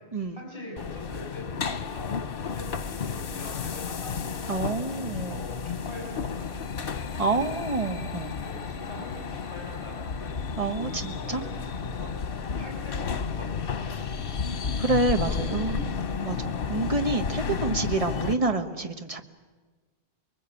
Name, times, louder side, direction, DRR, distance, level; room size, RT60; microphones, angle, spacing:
voice 1, 0.3-4.6 4.8-6.1 6.4-7.7 8.4-10.3 10.8-13.5 13.7-14.2 15.3-15.8, left 1 dB, 35° left, -2 dB, 7.5 m, -43 dB
sound 1, 0.8-18.3, left 6 dB, 65° left, 1.2 m, -32 dB
voice 2, 4.5-5.4 7.2-8.4 10.6-11.4 14.8-15.8 16.2-19.2, right 3 dB, 35° right, 7 dB, 1.4 m, -28 dB
25.0 x 22.5 x 8.5 m, 1.4 s
omnidirectional pair, 1.0 m